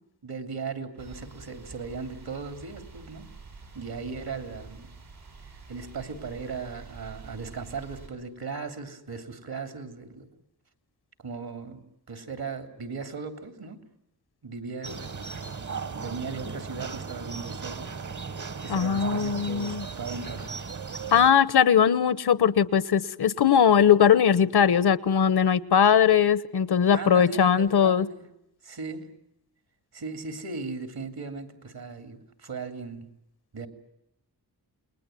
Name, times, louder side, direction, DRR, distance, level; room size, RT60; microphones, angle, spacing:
voice 1, 0.2-3.3 3.7-5.0 5.7-10.2 11.2-11.8 12.1-13.8 14.4-15.4 15.9-17.9 18.6-20.6 26.9-28.2 28.6-29.0 29.9-33.1 33.5-33.7, right 4 dB, 75° right, 8 dB, 3.2 m, -37 dB
sound 1, 1.0-8.1, right 4 dB, 90° right, 7.8 m, -47 dB
sound 2, 14.8-21.3, right 5 dB, 50° right, 1.3 m, -36 dB
voice 2, 18.7-19.8 21.1-28.1, left 8 dB, 85° left, 18 dB, 1.1 m, -20 dB
29.0 x 21.0 x 9.2 m, 0.84 s
wide cardioid pair, 105°, 38 cm